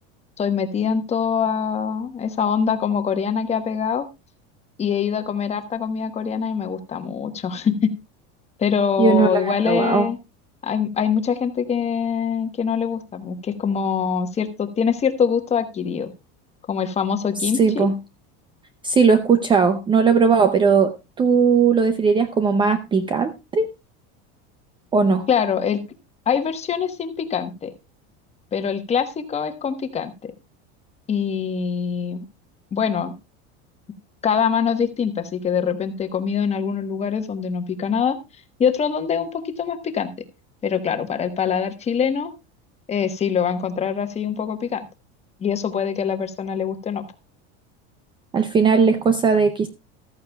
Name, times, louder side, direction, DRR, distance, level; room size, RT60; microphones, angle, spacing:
voice 1, 0.4-4.1 4.8-7.9 8.6-10.2 10.6-16.1 16.7-17.9 25.3-25.8 26.3-27.7 28.5-30.3 31.1-32.2 32.7-33.1 34.2-38.2 38.6-40.1 40.6-42.3 42.9-44.8 45.4-47.0, left 7 dB, 20° left, 8 dB, 1.2 m, -24 dB
voice 2, 9.0-10.1 17.4-18.0 18.8-23.7 24.9-25.3 48.3-49.7, right 5 dB, 15° right, 10 dB, 0.5 m, -18 dB
14.5 x 13.5 x 2.3 m, 0.26 s
cardioid pair, 165°, 33 cm